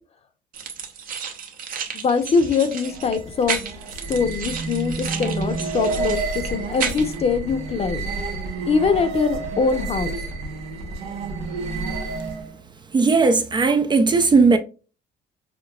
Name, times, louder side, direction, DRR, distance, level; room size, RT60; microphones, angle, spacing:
sound 1, 0.5-7.2, right 7 dB, 55° right, 0.9 m, -32 dB
voice 1, 1.9-3.6 4.1-8.0 8.7-10.1, left 5 dB, 35° left, 0.7 m, -22 dB
sound 2, 2.8-12.6, right 3 dB, 90° right, 0.9 m, -30 dB
voice 2, 12.9-14.6, right 4 dB, 25° right, 0.4 m, -17 dB
5.9 x 2.2 x 2.3 m
cardioid pair, 110°, 17 cm